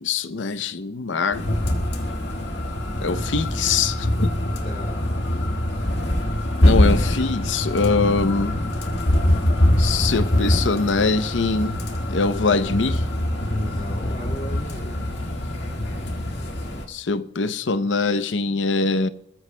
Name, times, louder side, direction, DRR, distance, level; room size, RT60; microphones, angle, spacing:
voice 1, 0.0-1.5 3.0-4.3 6.6-8.6 9.8-11.8 12.1-13.0 16.9-19.1, left 4 dB, 85° left, 0.7 m, -23 dB
sound 1, 1.3-16.9, left 1 dB, 65° left, 1.8 m, -23 dB
voice 2, 4.4-5.0 13.5-15.0, equal, 45° left, 2.6 m, -36 dB
26.0 x 14.5 x 2.2 m
head